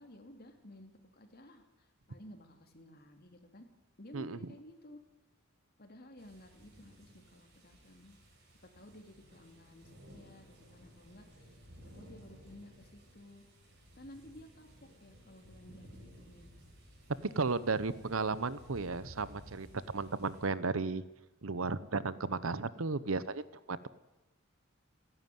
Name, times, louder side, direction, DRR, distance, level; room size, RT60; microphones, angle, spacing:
voice 1, 0.0-3.7 4.0-5.0 5.8-8.2 8.7-11.6 11.9-13.5 14.0-16.5, left 1 dB, 45° left, 5 dB, 2.9 m, -54 dB
sound 1, 6.2-20.5, equal, 55° right, 7.4 m, -57 dB
voice 2, 17.2-19.7 19.9-21.0 21.4-23.9, right 4 dB, 80° right, 17 dB, 0.9 m, -34 dB
29.5 x 11.0 x 9.4 m, 1.1 s
head